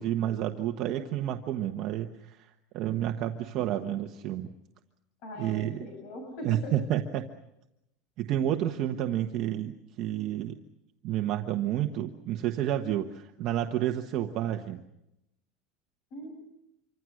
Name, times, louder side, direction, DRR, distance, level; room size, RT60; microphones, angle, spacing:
voice 1, 0.0-2.5 2.7-4.5 5.4-5.8 6.4-7.3 8.2-10.6 11.0-14.8, right 11 dB, 35° right, 4 dB, 1.2 m, -30 dB
voice 2, 5.2-6.7 16.1-16.4, left 1 dB, 45° left, 2 dB, 7.7 m, -40 dB
27.5 x 25.5 x 6.4 m, 0.86 s
cardioid pair, 180°, 0 cm